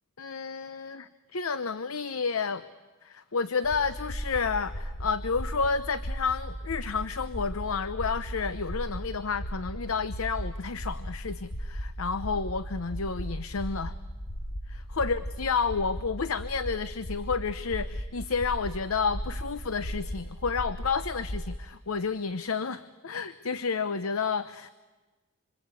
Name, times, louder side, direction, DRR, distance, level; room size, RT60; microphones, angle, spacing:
voice 1, 0.2-2.7 3.0-14.0 14.7-24.7, left 5 dB, 80° left, 13 dB, 0.8 m, -30 dB
sound 1, 3.6-21.5, equal, 50° left, 5.7 m, -37 dB
27.0 x 26.0 x 8.3 m, 1.3 s
head